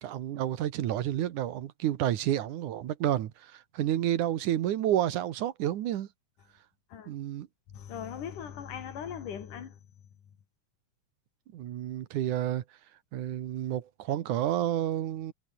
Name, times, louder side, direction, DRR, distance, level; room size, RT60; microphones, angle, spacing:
voice 1, 0.0-6.1 7.1-7.5 11.5-12.6 13.1-15.3, right 12 dB, 75° right, 2.7 m, -30 dB
voice 2, 7.7-9.8, left 8 dB, 75° left, 4.0 m, -39 dB
omnidirectional pair, 3.7 m